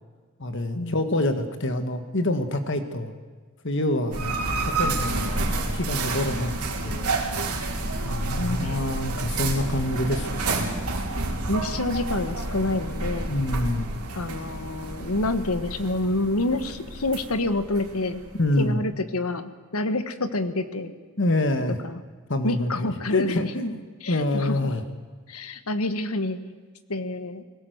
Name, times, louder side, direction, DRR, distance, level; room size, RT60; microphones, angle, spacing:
voice 1, 0.4-3.1 3.6-4.3 4.8-5.2 5.7-7.5 8.0-11.1 13.3-13.9 18.4-18.8 21.2-21.8 22.3-24.8, left 1 dB, 55° left, 8 dB, 1.5 m, -26 dB
sound 1, 4.1-18.7, right 2 dB, 90° right, 3.5 m, -30 dB
voice 2, 8.4-8.8 11.5-13.3 14.1-18.2 18.6-20.9 21.8-22.0 22.4-23.5 24.0-24.6 25.3-26.4 26.9-27.4, left 2 dB, 75° left, 11 dB, 1.4 m, -28 dB
20.5 x 17.5 x 8.0 m, 1.5 s
head